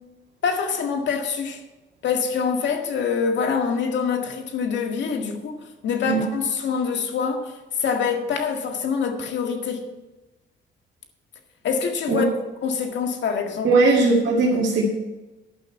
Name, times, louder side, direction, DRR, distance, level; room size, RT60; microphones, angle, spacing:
voice 1, 0.4-1.6 2.0-7.5 7.8-9.9 11.6-12.3 12.6-13.8, left 6 dB, 65° left, 1.8 m, -25 dB
voice 2, 13.6-14.8, right 3 dB, 70° right, 2.1 m, -18 dB
11.0 x 5.9 x 7.6 m
cardioid pair, 90°, 20 cm